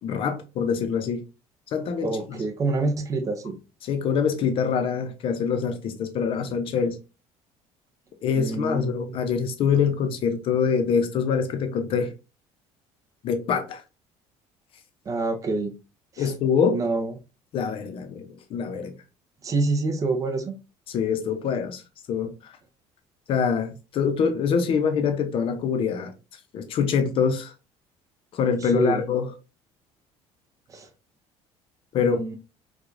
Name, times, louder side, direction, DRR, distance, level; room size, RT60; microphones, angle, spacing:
voice 1, 0.0-1.2 1.7-2.4 3.8-7.0 8.2-12.1 13.2-13.8 16.2-16.8 17.5-18.9 20.9-21.8 22.1-22.5 23.3-26.1 26.5-27.5 28.3-29.3 31.9-32.4, left 6 dB, 50° left, 0.6 m, -25 dB
voice 2, 2.0-3.6 8.3-9.2 15.1-15.7 16.1-16.3 16.7-17.1 19.4-20.6 28.6-29.0 30.7-30.9 32.0-32.4, right 3 dB, 30° right, 0.5 m, -27 dB
4.7 x 2.3 x 2.5 m
cardioid pair, 150°, 12 cm